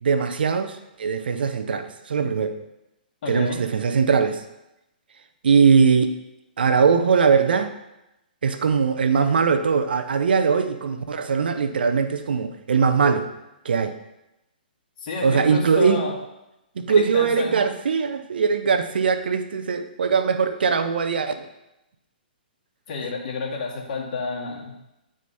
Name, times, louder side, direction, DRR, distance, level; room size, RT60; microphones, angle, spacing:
voice 1, 0.0-2.6 3.3-4.4 5.4-6.1 6.6-7.7 8.4-13.3 13.6-14.0 15.2-16.0 16.8-21.5, right 5 dB, 75° right, 9 dB, 0.8 m, -21 dB
voice 2, 3.2-3.6 15.0-16.2 16.9-17.6 22.9-24.7, left 3 dB, 50° left, -3 dB, 2.3 m, -30 dB
9.1 x 5.1 x 4.2 m, 0.90 s
hypercardioid pair, 140°, 5 cm